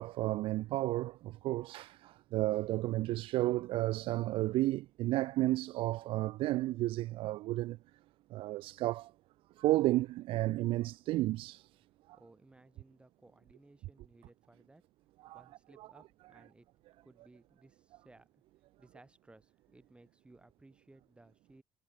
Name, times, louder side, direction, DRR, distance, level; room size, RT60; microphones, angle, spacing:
voice 1, 0.0-7.8 8.3-9.1 9.6-11.7 15.2-15.4, right 17 dB, 80° right, 0.4 m, -32 dB
voice 2, 12.1-14.9 15.3-16.7 17.0-18.4 18.8-21.6, right 2 dB, 10° right, 6.7 m, -61 dB
cardioid pair, 125°, 9 cm